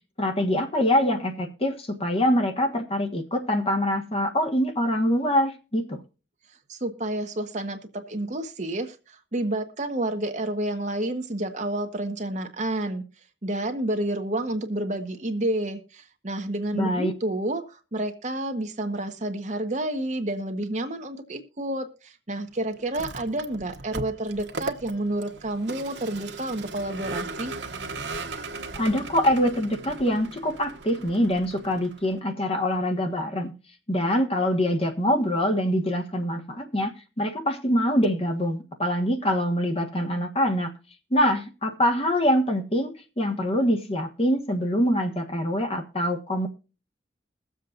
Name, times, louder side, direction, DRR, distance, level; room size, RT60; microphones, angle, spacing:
voice 1, 0.2-6.0 16.7-17.1 28.7-33.5 33.9-40.7 41.1-46.5, equal, 35° left, 1.5 m, -24 dB
voice 2, 6.7-13.0 13.4-27.5, right 1 dB, 40° right, 1.2 m, -30 dB
Vehicle, 22.8-32.2, right 3 dB, 80° right, 1.2 m, -37 dB
22.0 x 7.5 x 2.5 m
head